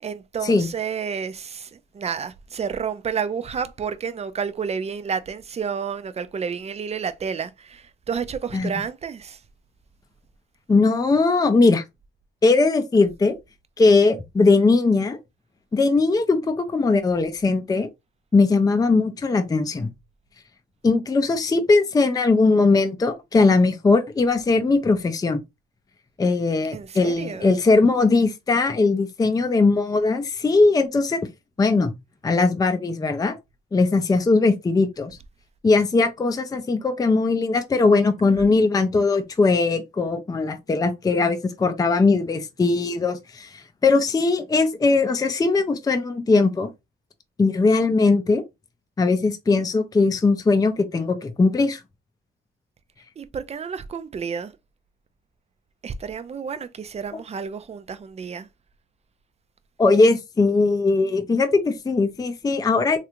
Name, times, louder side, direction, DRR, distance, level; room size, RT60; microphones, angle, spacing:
voice 1, 0.0-9.4 26.7-27.6 53.2-54.5 55.8-58.5, right 6 dB, 35° right, 0.5 m, -30 dB
voice 2, 10.7-11.8 12.4-13.4 13.8-15.2 15.7-17.9 18.3-19.9 20.8-25.4 26.2-31.3 31.6-31.9 32.2-33.3 33.7-35.2 35.6-46.7 47.4-48.4 49.0-51.8 59.8-63.0, left 3 dB, 20° left, 0.5 m, -20 dB
3.2 x 2.5 x 2.9 m
cardioid pair, 90°, 20 cm